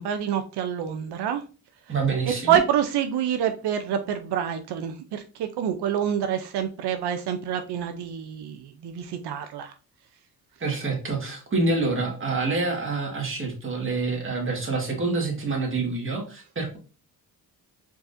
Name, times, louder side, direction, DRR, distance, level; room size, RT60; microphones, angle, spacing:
voice 1, 0.0-1.4 2.5-9.7, right 9 dB, 85° right, 0.6 m, -27 dB
voice 2, 1.9-2.6 10.6-16.8, right 3 dB, 30° right, 1.7 m, -27 dB
4.7 x 4.0 x 2.6 m
cardioid pair, 115°, 39 cm